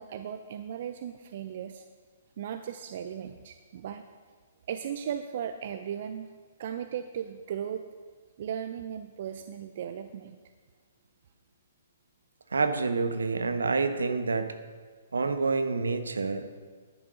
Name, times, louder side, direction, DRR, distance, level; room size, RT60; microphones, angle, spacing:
voice 1, 0.0-1.9 2.4-4.0 4.7-6.3 6.6-7.8 8.4-10.4, right 9 dB, 55° right, 9 dB, 0.6 m, -36 dB
voice 2, 12.5-14.5 15.1-16.5, right 4 dB, 75° right, 9 dB, 1.1 m, -28 dB
11.0 x 10.5 x 5.0 m, 1.5 s
figure-of-eight pair, 120°, 0 cm